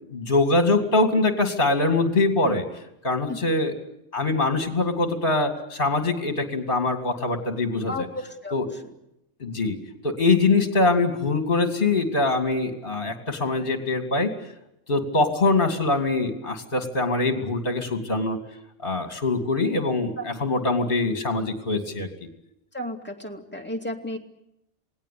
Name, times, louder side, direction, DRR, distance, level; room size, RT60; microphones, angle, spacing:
voice 1, 0.1-2.7 3.0-3.7 4.1-8.1 8.5-8.7 9.4-9.8 10.0-14.3 14.9-18.4 18.8-22.1, left 3 dB, 40° left, 7 dB, 2.7 m, -23 dB
voice 2, 7.9-8.8 20.2-20.3 22.7-24.2, left 1 dB, 5° left, 2 dB, 2.5 m, -33 dB
27.5 x 19.0 x 8.5 m, 0.84 s
omnidirectional pair, 1.5 m